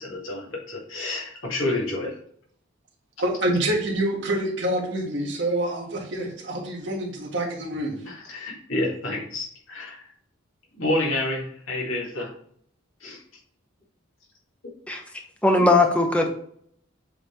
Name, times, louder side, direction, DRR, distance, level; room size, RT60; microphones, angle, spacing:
voice 1, 0.0-2.2 8.1-10.1 10.7-12.3 13.0-13.2, left 2 dB, 75° left, -3 dB, 2.2 m, -29 dB
voice 2, 3.2-8.0, right 1 dB, 60° right, -1 dB, 1.7 m, -26 dB
voice 3, 15.4-16.3, left 2 dB, 5° left, 3 dB, 0.8 m, -19 dB
7.7 x 3.9 x 3.3 m, 0.63 s
head